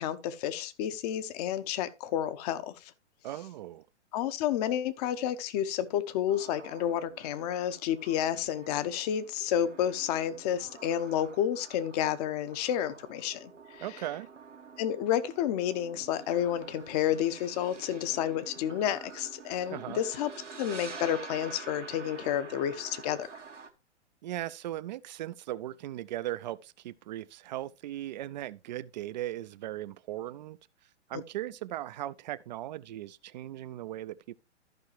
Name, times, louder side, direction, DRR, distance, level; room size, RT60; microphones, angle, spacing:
voice 1, 0.0-2.9 4.1-13.8 14.8-20.3 20.6-23.3, left 10 dB, 35° left, 1.0 m, -30 dB
voice 2, 3.2-3.9 13.8-14.3 19.7-20.0 24.2-30.6 31.1-34.3, right 14 dB, 40° right, 0.5 m, -38 dB
sound 1, 6.3-23.7, right 5 dB, 90° right, 1.6 m, -48 dB
14.0 x 5.6 x 3.2 m
figure-of-eight pair, 115°, 35 cm